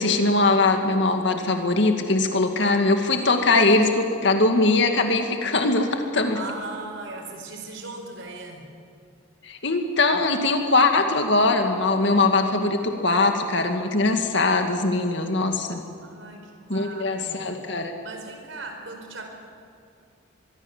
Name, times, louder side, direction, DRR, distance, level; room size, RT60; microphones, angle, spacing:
voice 1, 0.0-6.4 9.4-15.8 16.7-17.9, left 3 dB, 60° left, 5 dB, 2.1 m, -21 dB
voice 2, 6.3-8.7 16.0-17.6 18.0-19.3, right 3 dB, 65° right, 4 dB, 4.7 m, -38 dB
24.5 x 22.5 x 7.3 m, 2.5 s
head